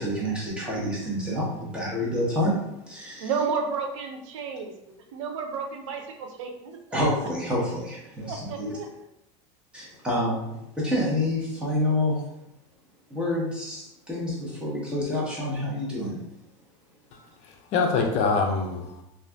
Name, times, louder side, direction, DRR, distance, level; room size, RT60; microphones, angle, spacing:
voice 1, 0.0-2.6 2.8-3.3 6.9-8.7 9.7-12.2 13.1-16.2, left 1 dB, 5° right, -6 dB, 1.0 m, -28 dB
voice 2, 3.2-4.7 5.1-7.0 8.2-8.9, right 5 dB, 90° right, 4 dB, 0.5 m, -31 dB
voice 3, 17.1-19.0, left 4 dB, 45° left, 3 dB, 0.5 m, -25 dB
2.4 x 2.4 x 3.3 m, 0.83 s
supercardioid pair, 135°, 15 cm